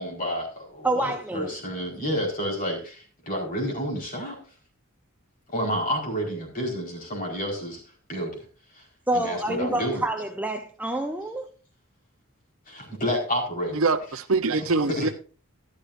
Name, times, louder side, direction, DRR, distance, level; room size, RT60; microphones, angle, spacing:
voice 1, 0.0-4.3 5.5-7.8 8.1-8.4 8.7-8.8 9.1-10.0 12.7-13.8 14.9-15.1, equal, 40° left, 4.6 m, -30 dB
voice 2, 0.8-1.5 9.1-11.5, right 1 dB, 5° right, 0.7 m, -27 dB
voice 3, 13.7-15.1, right 3 dB, 70° right, 0.8 m, -24 dB
13.5 x 12.0 x 2.6 m
head